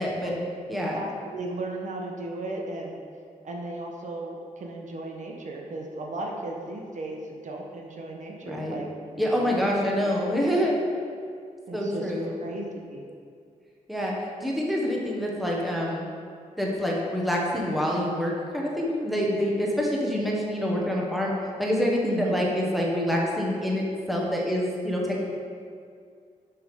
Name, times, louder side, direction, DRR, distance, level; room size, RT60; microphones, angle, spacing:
voice 1, 0.0-1.0 8.5-8.8 9.1-10.8 11.7-12.4 13.9-14.1 14.4-16.1 16.6-25.3, equal, ahead, -3 dB, 1.2 m, -26 dB
voice 2, 0.9-3.0 3.4-8.9 9.4-9.7 10.0-10.5 11.7-12.1 12.4-13.0 22.0-22.4, right 2 dB, 65° right, 0 dB, 1.0 m, -36 dB
6.6 x 6.0 x 5.1 m, 2.3 s
wide cardioid pair, 115°, 14 cm